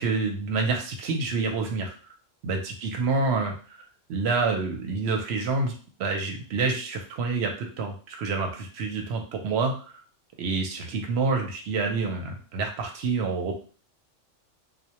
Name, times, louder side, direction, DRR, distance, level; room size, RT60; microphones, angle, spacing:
voice 1, 0.0-1.9 2.4-3.8 4.1-5.7 6.0-10.0 10.4-13.5, right 4 dB, 65° right, 3 dB, 0.8 m, -27 dB
2.1 x 2.1 x 2.8 m, 0.40 s
omnidirectional pair, 1.3 m